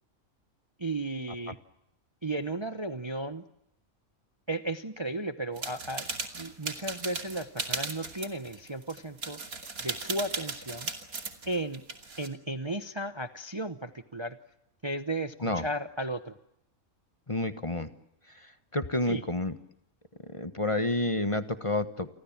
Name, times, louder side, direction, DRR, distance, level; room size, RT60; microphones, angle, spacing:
voice 1, 0.8-1.6 2.2-3.4 4.5-6.1 6.3-9.4 9.8-10.9 11.5-11.8 12.2-14.4 14.8-16.3 19.1-19.2, right 2 dB, 20° right, 10 dB, 0.9 m, -34 dB
sound 1, 5.6-12.3, right 4 dB, 90° right, 3.1 m, -37 dB
voice 2, 17.3-17.9 18.7-19.5 20.3-22.1, left 2 dB, 25° left, 10 dB, 1.3 m, -29 dB
30.0 x 24.5 x 7.3 m, 0.79 s
omnidirectional pair, 1.5 m